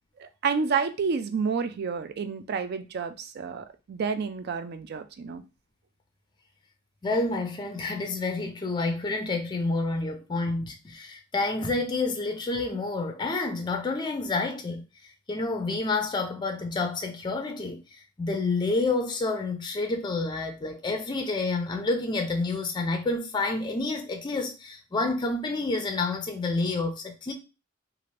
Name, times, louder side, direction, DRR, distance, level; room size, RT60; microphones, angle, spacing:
voice 1, 0.2-5.4, right 5 dB, 55° right, 0.4 m, -30 dB
voice 2, 7.0-14.8 15.3-17.8 18.2-27.3, left 3 dB, 25° left, 0.4 m, -29 dB
2.7 x 2.5 x 3.1 m
head